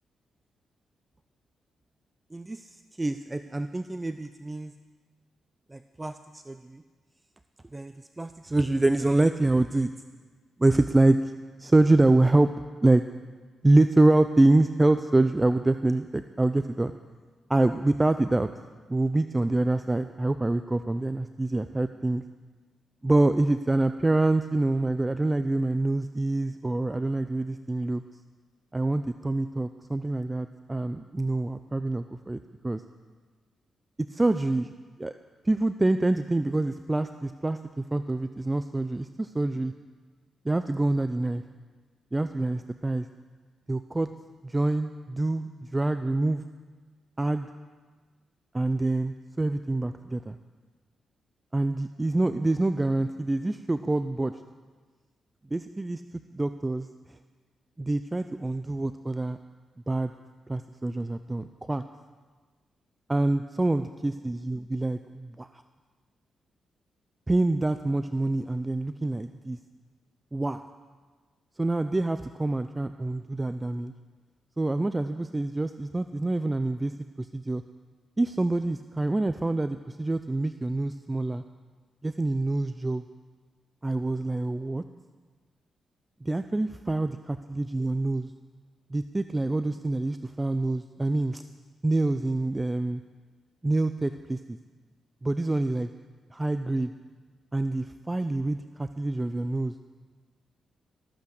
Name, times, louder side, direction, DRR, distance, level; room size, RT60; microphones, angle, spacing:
voice 1, 2.3-2.7 3.0-4.7 5.7-6.8 7.7-9.9 10.6-11.3 11.6-12.5 12.8-13.0 13.6-16.9 17.5-18.5 18.9-22.2 23.0-28.0 28.7-32.8 34.1-34.7 35.0-35.1 35.4-39.7 40.4-41.4 42.1-43.1 43.7-44.1 44.4-46.4 47.2-47.5 48.5-50.4 51.5-54.3 55.5-56.0 56.3-56.9 57.8-59.4 59.9-60.1 60.5-61.8 63.1-65.6 67.3-69.6 70.3-70.7 71.6-73.9 74.6-76.9 77.2-77.6 78.2-81.4 82.0-83.0 83.8-84.8 86.2-88.3 88.9-91.4 91.8-93.0 93.6-94.6 95.2-95.9 96.3-96.9 97.5-99.7, right 2 dB, 20° right, 10 dB, 0.5 m, -26 dB
19.0 x 8.3 x 6.6 m, 1.4 s
supercardioid pair, 60°, 0 cm